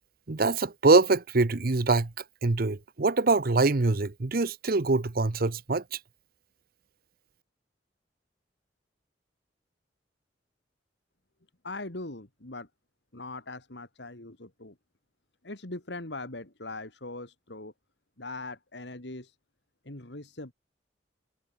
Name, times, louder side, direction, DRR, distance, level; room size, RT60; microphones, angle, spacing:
voice 1, 0.3-2.1 2.4-6.0, right 3 dB, 55° right, 0.8 m, -24 dB
voice 2, 11.6-12.7 13.1-14.7 15.4-17.7 18.2-19.3 19.8-20.5, left 2 dB, 70° left, 2.8 m, -40 dB
head